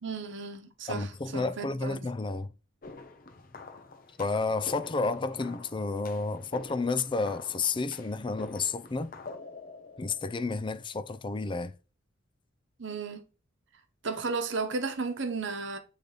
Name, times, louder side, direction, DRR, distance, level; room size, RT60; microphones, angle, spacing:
voice 1, 0.0-2.1 12.8-13.2 14.0-15.8, right 4 dB, 65° right, 1.0 m, -34 dB
voice 2, 0.9-2.5 4.2-9.1 10.0-11.7, left 3 dB, 25° left, 0.5 m, -31 dB
sound 1, 2.8-10.9, left 3 dB, 45° left, 0.8 m, -47 dB
8.4 x 3.4 x 4.0 m
head